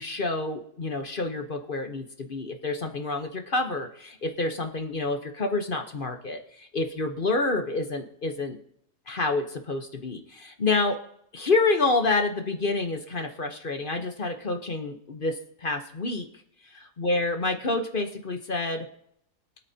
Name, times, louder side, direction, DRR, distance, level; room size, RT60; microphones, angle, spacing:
voice 1, 0.0-8.6 9.1-11.0 11.3-16.3 16.6-18.9, left 3 dB, 40° left, 6 dB, 1.0 m, -28 dB
23.5 x 8.7 x 2.8 m, 0.75 s
omnidirectional pair, 1.7 m